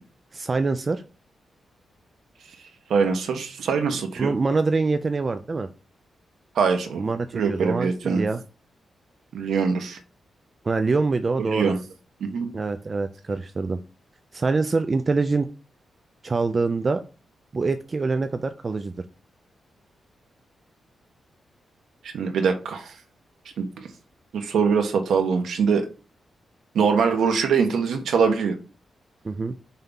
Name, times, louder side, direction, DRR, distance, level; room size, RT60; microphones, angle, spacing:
voice 1, 0.3-1.0 4.2-5.7 7.0-8.4 10.6-11.7 12.5-13.8 14.3-15.5 16.2-17.0 17.5-18.9 29.2-29.5, right 3 dB, 30° right, 9 dB, 0.4 m, -25 dB
voice 2, 2.9-4.3 6.5-7.0 7.3-8.3 9.3-10.0 11.5-11.8 12.2-12.5 22.1-22.9 23.6-23.7 24.3-25.9 26.7-28.6, right 5 dB, 90° right, 5 dB, 1.2 m, -23 dB
5.6 x 3.5 x 5.4 m, 0.33 s
wide cardioid pair, 160°, 0 cm